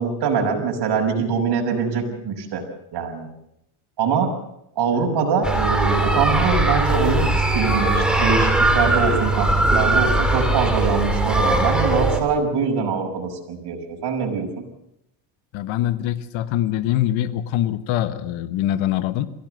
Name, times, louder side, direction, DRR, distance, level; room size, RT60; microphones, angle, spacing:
voice 1, 0.0-2.6 2.9-3.3 4.0-4.4 4.8-7.3 7.5-14.6, right 5 dB, 55° right, 2 dB, 6.3 m, -23 dB
sound 1, 5.4-12.2, right 2 dB, ahead, 3.9 m, -20 dB
voice 2, 15.5-19.3, left 12 dB, 70° left, 13 dB, 1.4 m, -23 dB
23.0 x 16.5 x 7.9 m, 0.78 s
cardioid pair, 105°, 49 cm